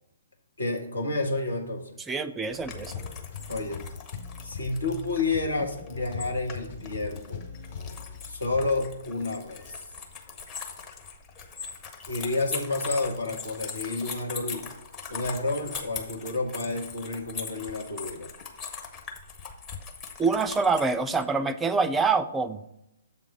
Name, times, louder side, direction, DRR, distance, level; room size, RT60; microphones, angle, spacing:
voice 1, 0.6-2.0 3.5-3.8 4.4-7.4 8.2-9.8 12.1-14.7 15.1-18.3, left 2 dB, 70° left, 2 dB, 1.4 m, -30 dB
voice 2, 2.1-3.0 20.2-22.6, right 4 dB, 10° right, 11 dB, 0.4 m, -26 dB
sound 1, 2.5-8.9, left 6 dB, 45° left, 1.3 m, -40 dB
sound 2, 2.5-21.2, left 5 dB, 25° left, 0.9 m, -41 dB
7.3 x 3.7 x 6.5 m, 0.85 s
figure-of-eight pair, 125°, 0 cm